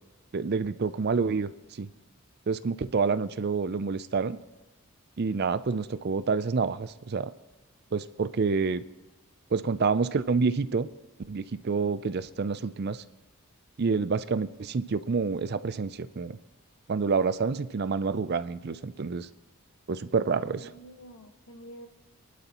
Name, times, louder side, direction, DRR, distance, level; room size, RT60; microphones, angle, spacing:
voice 1, 0.3-1.5 1.8-1.9 2.5-4.4 5.2-7.3 7.9-8.8 9.5-10.9 11.3-13.0 13.8-16.4 16.9-19.3 19.9-20.7, right 4 dB, 45° right, 14 dB, 0.5 m, -28 dB
voice 2, 20.3-21.9, right 1 dB, 85° left, 4 dB, 1.7 m, -47 dB
25.0 x 11.5 x 3.0 m, 1.1 s
head